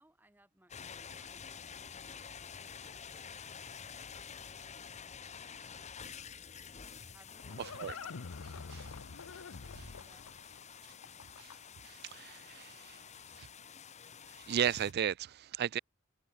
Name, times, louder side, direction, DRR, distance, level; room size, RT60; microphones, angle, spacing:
voice 1, 0.0-2.6 7.1-10.4, right 1 dB, 10° right, 2.0 m, -67 dB
sound 1, 0.7-14.9, left 7 dB, 35° left, 0.9 m, -49 dB
Livestock farm animals working animals, 6.8-11.9, left 5 dB, 70° left, 0.7 m, -47 dB
voice 2, 11.9-13.0 13.4-13.5 14.4-15.8, right 9 dB, 50° right, 0.4 m, -35 dB
head